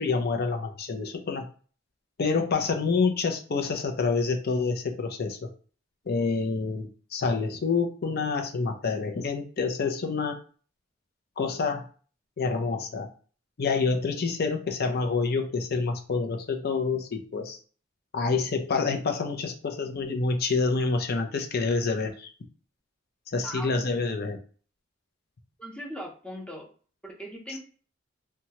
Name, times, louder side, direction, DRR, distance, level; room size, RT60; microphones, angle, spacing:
voice 1, 0.0-1.5 2.2-5.5 6.1-10.4 11.4-11.9 12.4-13.1 13.6-17.6 18.1-22.3 23.3-24.4, left 4 dB, 55° left, 5 dB, 0.5 m, -27 dB
voice 2, 25.6-26.6 27.0-27.6, equal, 5° left, -1 dB, 0.7 m, -39 dB
2.8 x 2.2 x 2.9 m, 0.40 s
head